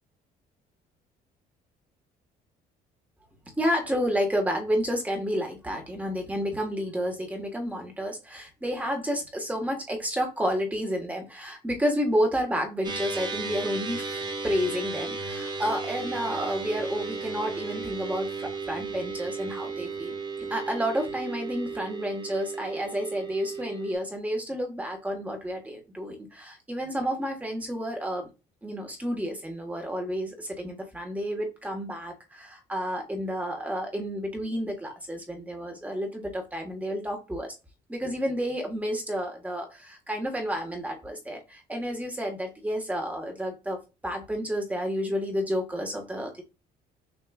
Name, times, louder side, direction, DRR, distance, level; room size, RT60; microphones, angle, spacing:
voice 1, 3.6-14.0 14.4-20.1 20.5-28.3 28.6-37.5 37.9-46.4, equal, 10° right, 2 dB, 1.4 m, -30 dB
sound 1, 12.8-24.0, right 4 dB, 25° right, 0.9 m, -35 dB
6.2 x 2.9 x 2.4 m, 0.29 s
cardioid pair, 110°, 17 cm